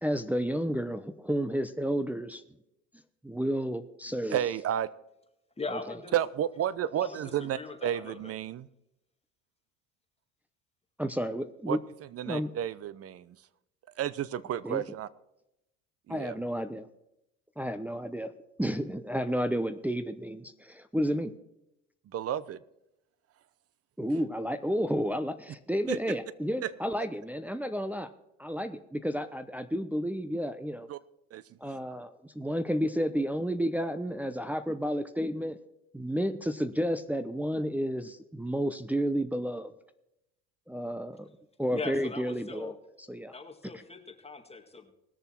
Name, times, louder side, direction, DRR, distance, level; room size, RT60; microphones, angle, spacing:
voice 1, 0.0-2.4 3.2-4.4 5.7-5.8 11.0-11.8 12.3-12.5 14.6-14.8 16.1-16.9 17.6-18.3 18.6-21.3 24.0-28.1 28.4-30.9 31.6-35.6 35.9-39.7 40.7-41.3 41.6-42.7 43.1-43.3, equal, 5° right, 7 dB, 0.8 m, -31 dB
voice 2, 4.3-4.9 6.1-8.7 11.7-13.5 14.0-15.1 16.1-16.4 22.0-22.6 25.9-26.2 26.6-26.7 30.9-31.0 31.3-31.7, right 10 dB, 40° right, 18 dB, 0.8 m, -32 dB
voice 3, 5.6-6.1 7.0-8.3 41.7-42.8 43.3-44.9, left 3 dB, 15° left, 4 dB, 2.0 m, -40 dB
20.0 x 6.8 x 4.5 m, 0.84 s
hypercardioid pair, 80°, 35 cm